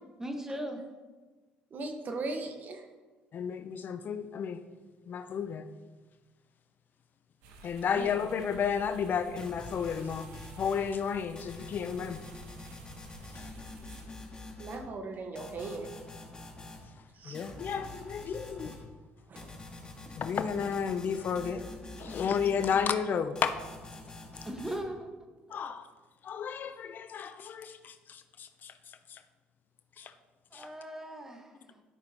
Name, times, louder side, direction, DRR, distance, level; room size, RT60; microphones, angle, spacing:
voice 1, 0.2-0.8 24.4-25.1 30.5-31.8, right 1 dB, 10° right, 4 dB, 1.3 m, -38 dB
voice 2, 1.7-2.8 7.9-8.1 14.6-15.9 17.2-17.4 17.7-17.9 19.3-19.5 22.0-22.2, right 3 dB, 45° right, 5 dB, 1.2 m, -39 dB
voice 3, 3.3-4.6 5.1-5.6 7.6-10.3 10.6-12.2 13.3-13.5 17.2-18.8 20.2-21.6 22.0-23.6 25.5-25.9 26.2-28.7 29.1-29.2 30.0-30.1 30.5-30.7, left 7 dB, 50° left, 11 dB, 0.5 m, -32 dB
sound 1, 7.4-14.1, right 2 dB, 85° right, 1.2 m, -52 dB
sound 2, 9.3-10.8 11.3-14.8 15.3-16.8 17.3-18.8 19.3-22.8 23.3-24.8, left 2 dB, 20° left, 1.9 m, -46 dB
11.5 x 6.1 x 2.9 m, 1.3 s
supercardioid pair, 75°, 4 cm